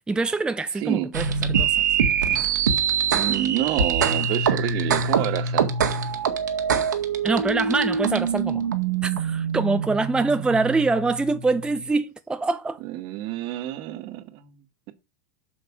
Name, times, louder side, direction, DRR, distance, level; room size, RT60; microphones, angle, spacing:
voice 1, 0.1-1.7 2.3-2.5 7.2-8.7 9.0-12.8, right 3 dB, 10° right, 0.7 m, -24 dB
voice 2, 0.7-1.1 3.1-5.7 12.8-14.6, right 14 dB, 50° right, 1.8 m, -28 dB
sound 1, 1.1-11.9, right 6 dB, 85° right, 1.9 m, -24 dB
7.6 x 6.4 x 6.1 m
hypercardioid pair, 100°, 9 cm